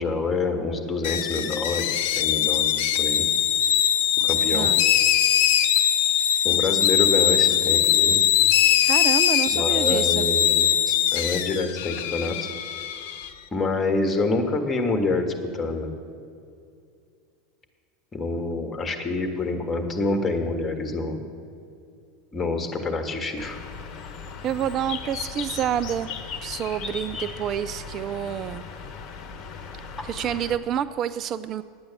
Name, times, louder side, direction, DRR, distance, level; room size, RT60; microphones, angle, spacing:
voice 1, 0.0-3.2 4.2-4.7 6.4-8.2 9.5-12.5 13.5-15.9 18.1-21.3 22.3-23.6, left 3 dB, 25° left, 6 dB, 1.6 m, -27 dB
sound 1, 1.0-13.3, left 10 dB, 60° left, 0.5 m, -21 dB
voice 2, 4.5-4.9 8.8-10.3 24.4-26.1 26.4-28.6 30.0-31.6, right 9 dB, 40° right, 13 dB, 0.3 m, -28 dB
Bird, 23.4-30.6, left 6 dB, 45° left, 1.1 m, -37 dB
10.5 x 8.6 x 7.2 m, 2.4 s
figure-of-eight pair, 85°, 0 cm